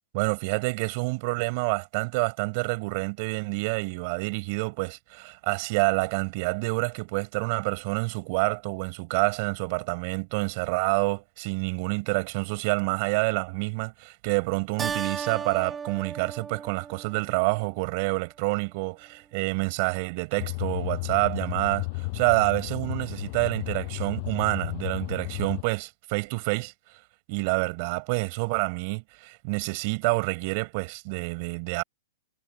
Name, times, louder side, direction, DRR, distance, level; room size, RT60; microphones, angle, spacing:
voice 1, 0.1-26.7 27.3-31.8, right 29 dB, 45° right, 4.6 m, -28 dB
Keyboard (musical), 14.8-17.7, right 6 dB, 15° right, 3.8 m, -35 dB
sound 1, 20.4-25.6, left 26 dB, 45° left, 6.3 m, -33 dB
hypercardioid pair, 140°, 0 cm